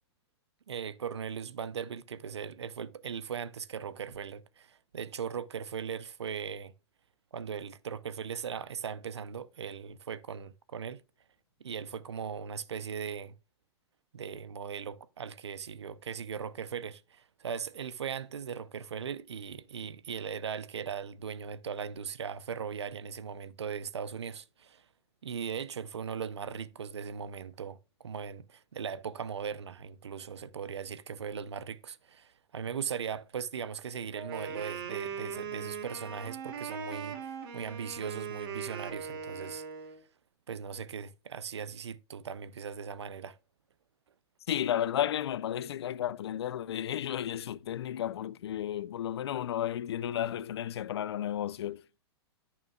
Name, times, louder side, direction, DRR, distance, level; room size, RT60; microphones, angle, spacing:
voice 1, 0.7-6.7 7.3-11.0 11.6-13.4 14.1-24.8 25.2-39.6 40.5-43.4, right 7 dB, 85° right, 0.8 m, -39 dB
Wind instrument woodwind instrument, 34.1-40.0, right 6 dB, 60° right, 2.9 m, -40 dB
voice 2, 44.5-51.8, left 11 dB, 75° left, 0.7 m, -33 dB
14.5 x 6.2 x 2.4 m
hypercardioid pair, 110°, 14 cm